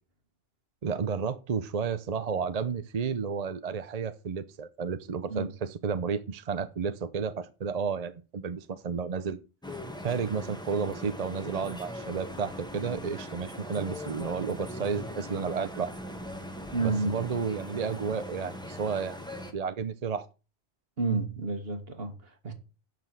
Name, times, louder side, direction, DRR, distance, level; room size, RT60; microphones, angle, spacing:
voice 1, 0.8-9.4 10.0-15.9 16.8-19.2 19.5-20.3, right 6 dB, 45° right, 0.7 m, -32 dB
sound 1, 9.6-19.5, left 1 dB, 5° left, 1.4 m, -40 dB
voice 2, 16.7-17.2 21.0-22.5, right 3 dB, 65° right, 1.9 m, -30 dB
9.2 x 6.1 x 7.4 m
omnidirectional pair, 1.1 m